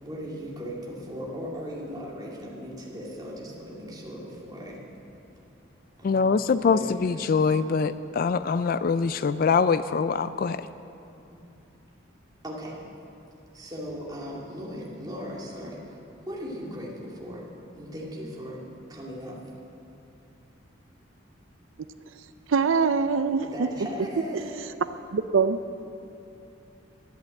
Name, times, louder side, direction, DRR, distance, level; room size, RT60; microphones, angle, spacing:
voice 1, 0.0-4.8 6.0-6.3 6.6-7.3 12.4-12.8 13.5-16.0 16.3-17.5 17.8-18.6 18.9-19.4 23.4-24.7, equal, 20° right, -4 dB, 2.4 m, -38 dB
voice 2, 6.0-10.7, left 5 dB, 45° left, 13 dB, 0.3 m, -24 dB
voice 3, 22.5-23.7 24.3-24.4 25.1-25.6, right 5 dB, 85° right, 11 dB, 0.5 m, -23 dB
12.0 x 10.5 x 7.7 m, 2.8 s
head